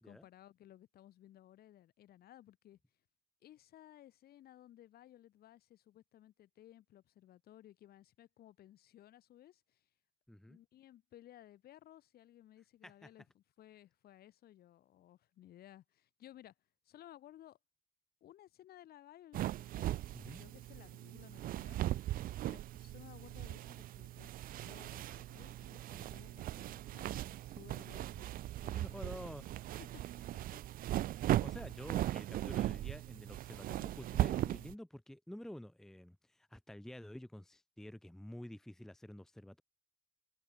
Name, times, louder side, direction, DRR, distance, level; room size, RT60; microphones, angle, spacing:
voice 1, 0.0-2.8 3.4-9.9 10.5-16.5 16.9-17.6 18.2-21.8 22.5-28.3 28.6-29.0 29.8-30.7, left 12 dB, 65° left, 5.6 m, -59 dB
voice 2, 10.3-10.6 12.8-13.1 20.1-20.4 28.7-29.5 31.4-39.6, left 1 dB, 5° left, 0.8 m, -49 dB
sound 1, 19.3-34.7, right 14 dB, 55° right, 0.4 m, -38 dB
cardioid pair, 110°, 17 cm